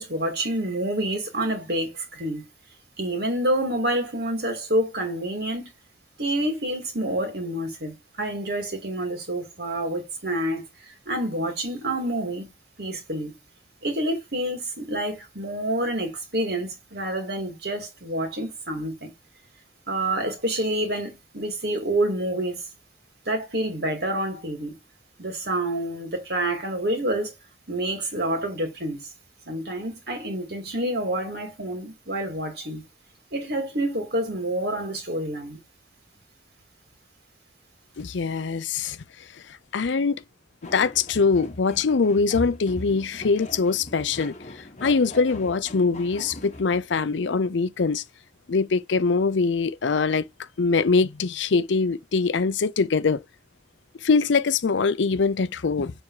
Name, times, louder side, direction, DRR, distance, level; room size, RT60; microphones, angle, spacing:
voice 1, 0.0-2.5 3.0-5.7 6.2-12.5 12.8-13.4 13.8-19.1 19.9-22.6 23.3-24.7 25.2-27.3 27.7-29.1 29.5-32.8 33.3-35.6, right 1 dB, 60° right, 2.6 m, -28 dB
voice 2, 38.0-39.0 39.7-40.2 40.7-44.3 44.8-48.0 48.5-50.2 50.6-53.2 54.0-55.9, left 4 dB, 75° left, 0.5 m, -23 dB
sound 1, 40.6-47.1, left 1 dB, 40° left, 1.0 m, -40 dB
7.2 x 3.5 x 4.8 m
head